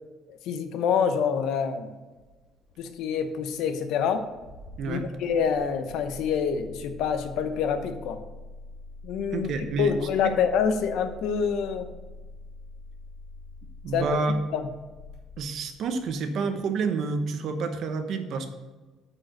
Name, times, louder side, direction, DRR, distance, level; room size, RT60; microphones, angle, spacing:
voice 1, 0.3-1.9 2.8-4.2 4.9-8.2 9.0-9.5 9.8-11.9 13.9-14.1 14.5-14.7, left 7 dB, 65° left, 8 dB, 0.8 m, -26 dB
Engine starting, 2.1-16.3, left 2 dB, 80° left, 2.8 m, -46 dB
voice 2, 4.8-5.2 9.3-10.0 10.2-10.3 13.8-14.4 15.4-18.5, right 4 dB, 45° right, 7 dB, 0.9 m, -29 dB
8.7 x 4.9 x 6.4 m, 1.2 s
cardioid pair, 180°, 0 cm